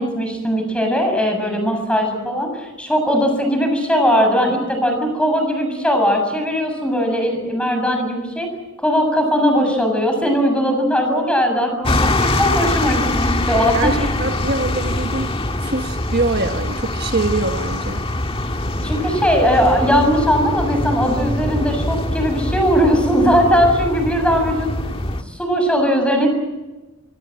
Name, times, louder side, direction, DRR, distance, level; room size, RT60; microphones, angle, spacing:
voice 1, 0.0-8.5 8.8-14.0 18.8-24.7 25.3-26.3, equal, 5° left, 4 dB, 7.2 m, -19 dB
sound 1, 11.8-25.2, left 1 dB, 25° left, 1.8 m, -23 dB
voice 2, 13.7-15.3 15.6-18.0, right 2 dB, 50° right, 5 dB, 1.6 m, -23 dB
25.5 x 24.5 x 7.8 m, 1.1 s
head